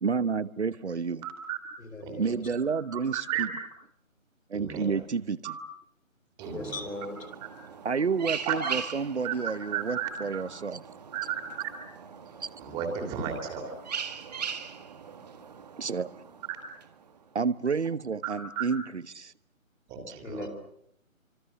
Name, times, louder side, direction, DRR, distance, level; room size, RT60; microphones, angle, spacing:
voice 1, 0.0-1.3 2.2-3.5 4.5-5.5 7.8-10.8 12.4-12.5 15.8-16.2 17.3-19.3, right 5 dB, 55° right, 18 dB, 1.0 m, -30 dB
voice 2, 1.2-1.6 2.0-2.1 2.5-3.5 4.5-4.9 5.4-5.5 6.4-6.7 8.5-8.7 9.2-9.3 9.7-10.4 11.1-11.3 11.6-11.7 12.6-13.7 16.5-16.6 18.2-18.7 19.9-20.5, right 8 dB, 10° right, 3 dB, 2.9 m, -34 dB
voice 3, 1.8-2.4 6.5-7.2 20.2-20.5, left 2 dB, 75° left, 3 dB, 6.3 m, -38 dB
sound 1, 6.4-17.3, right 7 dB, 30° right, 1.7 m, -41 dB
25.5 x 25.5 x 7.2 m, 0.72 s
figure-of-eight pair, 155°, 41 cm